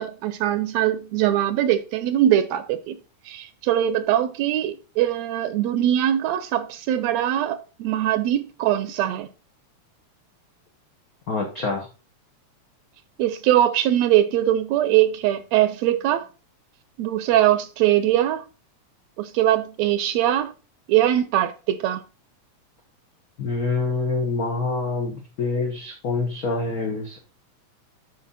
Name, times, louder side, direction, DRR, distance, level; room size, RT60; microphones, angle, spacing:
voice 1, 0.0-3.0 3.3-9.3 13.2-16.3 17.0-18.4 19.2-20.5 20.9-22.0, right 12 dB, 80° right, 1.7 m, -21 dB
voice 2, 11.3-11.9 23.4-27.2, left 3 dB, 80° left, 0.8 m, -26 dB
7.7 x 5.5 x 4.0 m
omnidirectional pair, 3.3 m